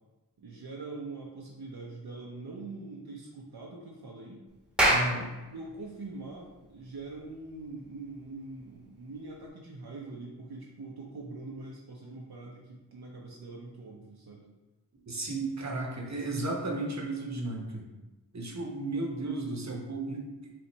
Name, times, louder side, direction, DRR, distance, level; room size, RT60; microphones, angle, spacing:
voice 1, 0.4-4.5 5.5-14.5, right 3 dB, 65° right, -3 dB, 0.7 m, -43 dB
Clapping, 4.6-9.4, right 1 dB, ahead, 1.0 m, -31 dB
voice 2, 4.9-5.3 15.1-17.9 18.3-20.5, right 2 dB, 40° right, 0 dB, 0.9 m, -34 dB
4.5 x 2.4 x 4.0 m, 1.1 s
cardioid pair, 45°, 40 cm